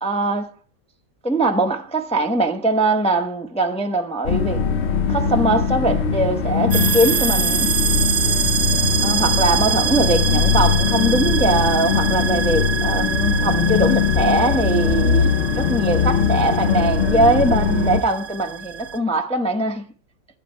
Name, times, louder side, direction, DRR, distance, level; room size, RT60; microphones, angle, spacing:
voice 1, 0.0-0.5 1.2-4.6 5.1-7.7 9.0-15.3 15.5-19.8, right 2 dB, 5° left, 0.5 m, -21 dB
sound 1, 4.2-18.0, left 6 dB, 55° left, 0.8 m, -20 dB
sound 2, 6.7-19.0, right 8 dB, 70° right, 1.2 m, -25 dB
11.5 x 10.0 x 4.4 m
omnidirectional pair, 1.8 m